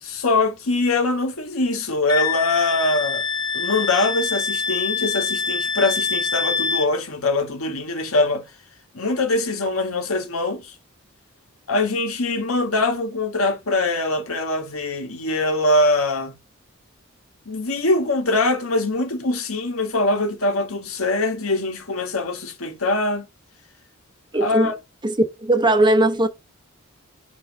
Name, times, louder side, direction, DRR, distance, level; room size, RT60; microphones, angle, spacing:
voice 1, 0.0-3.2 3.5-8.4 8.9-10.7 11.7-16.3 17.4-23.2 24.4-24.7, left 2 dB, 85° left, 1.7 m, -23 dB
Wind instrument woodwind instrument, 2.1-6.9, left 5 dB, 20° left, 0.8 m, -25 dB
voice 2, 24.3-24.8 25.0-26.3, right 1 dB, 20° right, 0.9 m, -18 dB
6.4 x 4.3 x 3.7 m
head